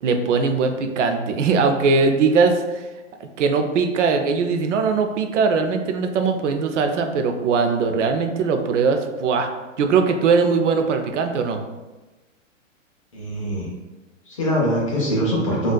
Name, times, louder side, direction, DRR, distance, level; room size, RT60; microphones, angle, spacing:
voice 1, 0.0-2.9 3.2-9.5 9.8-11.6, right 5 dB, 65° right, 5 dB, 0.5 m, -20 dB
voice 2, 13.1-13.7 14.3-15.7, equal, 25° left, -4 dB, 0.4 m, -22 dB
3.8 x 2.3 x 2.2 m, 1.2 s
hypercardioid pair, 155°, 39 cm